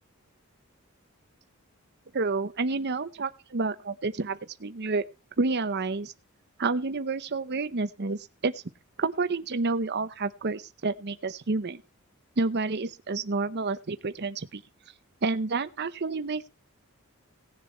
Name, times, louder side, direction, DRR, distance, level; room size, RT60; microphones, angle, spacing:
voice 1, 2.1-5.0 5.4-6.1 6.6-8.6 9.0-11.8 12.4-14.6 15.2-16.5, right 3 dB, 50° right, 11 dB, 0.8 m, -29 dB
17.5 x 7.1 x 4.3 m, 0.29 s
head